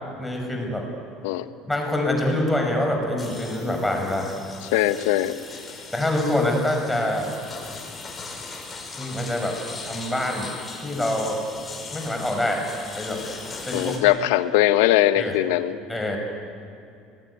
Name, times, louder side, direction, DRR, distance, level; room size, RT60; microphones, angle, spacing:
voice 1, 0.2-0.9 1.7-4.3 5.9-7.3 9.0-9.6 9.8-10.5 10.8-11.4 11.9-12.6 13.0-13.2 13.7-14.1 15.2-15.3 15.9-16.2, left 1 dB, 5° left, 2 dB, 5.6 m, -25 dB
sound 1, 3.2-14.0, left 4 dB, 25° left, 5.0 m, -39 dB
voice 2, 4.7-5.4 13.7-15.8, left 14 dB, 85° left, 12 dB, 1.0 m, -20 dB
23.5 x 19.5 x 9.6 m, 2.6 s
supercardioid pair, 110°, 0 cm